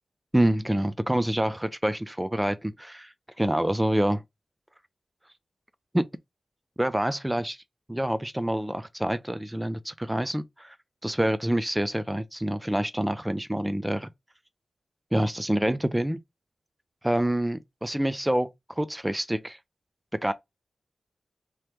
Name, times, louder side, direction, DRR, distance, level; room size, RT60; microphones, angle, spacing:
voice 1, 0.3-4.2 5.9-6.1 6.8-7.6 7.9-10.8 11.0-14.1 15.1-16.2 17.0-19.6 20.1-20.3, right 1 dB, 10° right, 0.3 m, -27 dB
3.0 x 2.8 x 3.3 m
wide cardioid pair, 105°, 0 cm